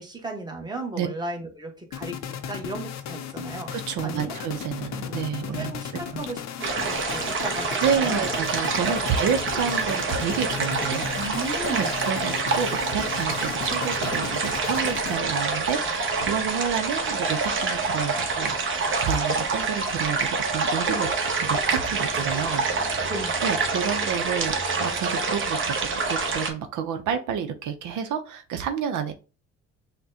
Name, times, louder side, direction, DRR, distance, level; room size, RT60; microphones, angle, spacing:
voice 1, 0.0-2.2 2.5-3.7 4.0-4.4 5.0-5.1 5.5-8.2 11.2-11.9 23.1-23.3, right 2 dB, 15° right, 1 dB, 1.2 m, -35 dB
sound 1, 1.9-15.5, left 9 dB, 65° left, 0.6 m, -36 dB
voice 2, 3.7-5.7 6.1-6.2 7.8-11.3 11.7-21.1 21.4-23.0 23.4-29.1, right 7 dB, 80° right, 7 dB, 0.6 m, -29 dB
sound 2, 6.6-26.5, right 4 dB, 40° right, 0.9 m, -26 dB
5.8 x 2.1 x 2.7 m, 0.33 s
cardioid pair, 90°, 30 cm